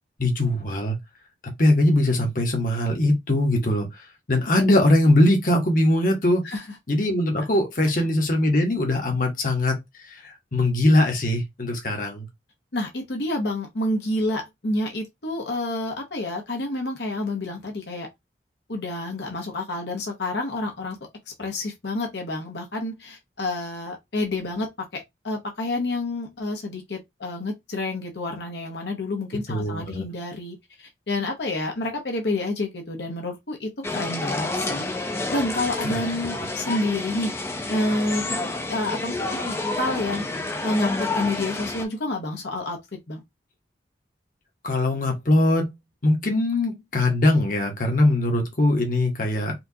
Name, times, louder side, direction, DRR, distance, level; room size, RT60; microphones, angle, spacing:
voice 1, 0.2-1.0 1.6-6.4 6.9-12.3 29.5-30.0 35.8-36.0 44.6-45.7 46.0-49.5, left 1 dB, 45° left, 1.1 m, -21 dB
voice 2, 12.7-18.1 18.7-21.0 21.4-24.7 24.9-34.8 35.3-37.3 37.7-38.2 38.7-40.2 40.6-42.8 43.1-43.2, left 2 dB, 70° left, 1.0 m, -29 dB
sound 1, 33.8-41.9, left 2 dB, 15° left, 0.5 m, -29 dB
4.3 x 2.4 x 2.7 m
head